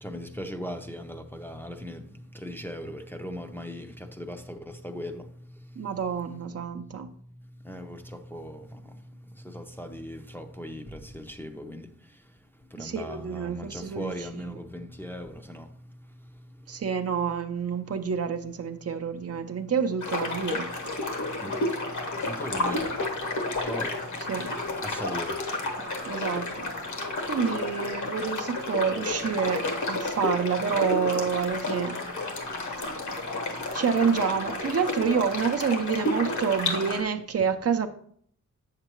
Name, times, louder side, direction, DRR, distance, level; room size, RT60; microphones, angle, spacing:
voice 1, 0.0-2.0 2.4-3.9 4.2-4.6 4.8-5.2 7.7-8.0 8.3-8.6 9.5-11.9 12.8-15.6 21.4-21.5 22.2-23.0 23.6-23.9 24.8-25.3, equal, 5° left, 0.5 m, -38 dB
voice 2, 5.8-7.1 12.8-14.1 16.7-20.7 24.3-24.5 26.1-26.7 27.2-32.0 33.7-37.9, right 6 dB, 50° right, 0.6 m, -28 dB
sound 1, 20.0-37.0, left 2 dB, 70° left, 1.2 m, -31 dB
7.7 x 6.6 x 3.0 m
wide cardioid pair, 105°, 31 cm